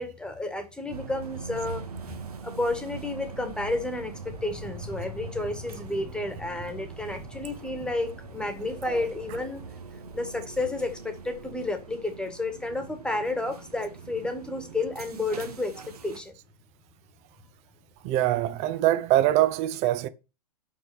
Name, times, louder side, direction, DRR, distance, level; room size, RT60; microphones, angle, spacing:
voice 1, 0.0-2.1 2.4-9.7 10.1-16.3, left 2 dB, 5° left, 1.6 m, -31 dB
sound 1, 0.9-16.2, right 5 dB, 70° right, 1.6 m, -42 dB
voice 2, 18.0-20.1, right 14 dB, 35° right, 0.8 m, -24 dB
6.1 x 5.8 x 7.1 m
figure-of-eight pair, 105°, 20 cm